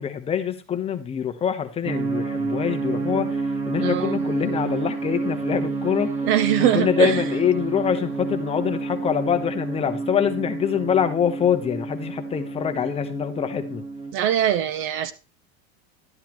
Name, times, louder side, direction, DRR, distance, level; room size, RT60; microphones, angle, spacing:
voice 1, 0.0-6.1 6.7-13.8, left 8 dB, 20° left, 0.9 m, -25 dB
sound 1, 1.8-14.1, right 3 dB, 20° right, 1.3 m, -29 dB
voice 2, 3.8-4.2 6.2-7.2 14.1-15.1, right 11 dB, 40° right, 0.7 m, -22 dB
12.0 x 10.5 x 3.0 m
supercardioid pair, 155°, 31 cm